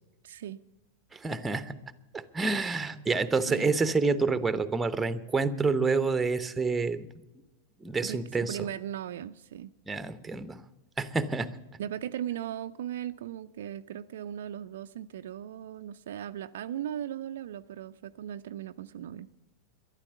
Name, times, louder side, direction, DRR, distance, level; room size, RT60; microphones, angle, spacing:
voice 1, 0.2-0.6 3.5-3.7 8.0-9.7 11.8-19.3, right 10 dB, 60° right, 8 dB, 0.4 m, -38 dB
voice 2, 1.1-1.8 2.1-7.0 7.8-8.6 9.9-10.6 11.0-11.5, right 4 dB, 10° right, 13 dB, 0.9 m, -28 dB
13.0 x 11.5 x 8.2 m, 0.99 s
figure-of-eight pair, 90°, 0 cm